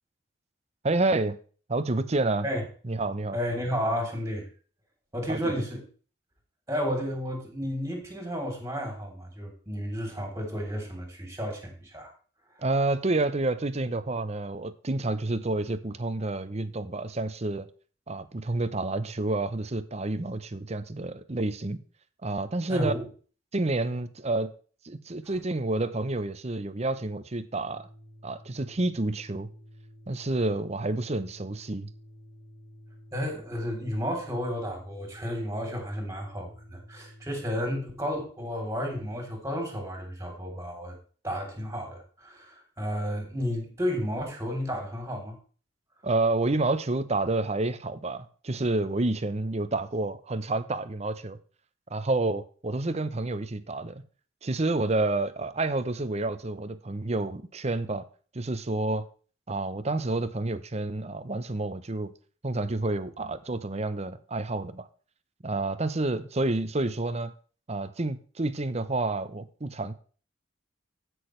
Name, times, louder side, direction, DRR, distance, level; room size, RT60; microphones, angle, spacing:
voice 1, 0.8-1.4 1.7-2.5 2.8-3.4 5.3-5.5 12.6-17.7 18.1-21.8 22.2-22.9 23.5-24.5 24.8-27.9 28.2-29.5 30.1-31.9 46.0-51.4 51.9-54.0 54.4-58.1 58.3-59.0 59.5-62.1 62.4-64.9 65.4-67.3 67.7-69.9, right 2 dB, 35° right, 0.7 m, -29 dB
voice 2, 3.3-4.5 5.1-5.8 6.7-12.1 22.7-23.1 25.3-25.4 33.1-41.0 41.2-45.4, equal, 15° right, 3.4 m, -32 dB
Organ, 27.6-37.9, equal, 20° left, 1.9 m, -51 dB
16.0 x 6.3 x 3.3 m
head